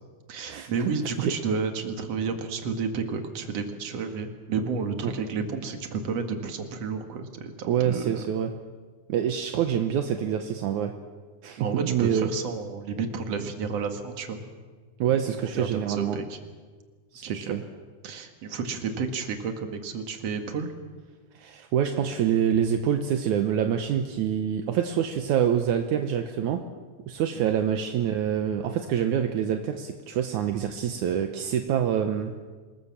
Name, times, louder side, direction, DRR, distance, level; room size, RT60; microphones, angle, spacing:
voice 1, 0.3-8.3 11.6-14.4 15.4-16.4 17.2-17.6 18.0-20.7 27.4-27.5, right 5 dB, 55° right, 6 dB, 2.9 m, -31 dB
voice 2, 7.7-8.5 9.1-11.0 11.4-12.3 15.0-16.2 17.1-17.6 21.4-26.6 27.1-32.3, right 9 dB, 75° right, 6 dB, 2.4 m, -26 dB
26.5 x 21.0 x 7.4 m, 1.5 s
omnidirectional pair, 3.6 m